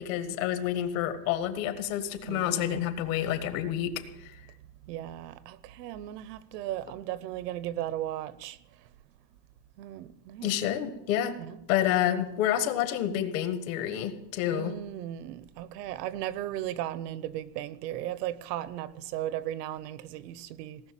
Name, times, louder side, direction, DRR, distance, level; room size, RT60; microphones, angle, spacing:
voice 1, 0.0-4.0 10.4-11.4 11.7-14.8, left 11 dB, 55° left, 1.6 m, -29 dB
voice 2, 2.3-2.8 4.9-8.6 9.8-10.5 11.4-11.6 14.5-20.8, right 12 dB, 75° right, 1.0 m, -36 dB
18.0 x 6.7 x 9.0 m
supercardioid pair, 180°, 49 cm